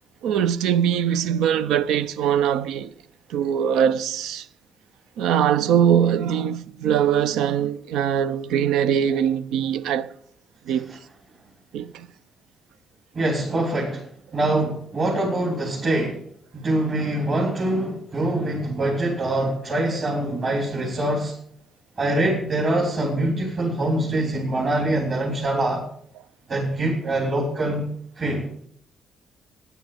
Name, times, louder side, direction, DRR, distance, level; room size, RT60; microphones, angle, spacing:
voice 1, 0.2-2.9 3.3-4.5 5.2-10.1 10.7-11.0 11.7-12.1, right 9 dB, 90° right, 0.5 m, -22 dB
voice 2, 13.1-14.0 14.3-16.2 16.5-21.3 22.0-25.8 26.5-27.9 28.2-28.5, right 1 dB, 45° right, 3.5 m, -24 dB
9.9 x 9.0 x 7.1 m
cardioid pair, 90°, 0 cm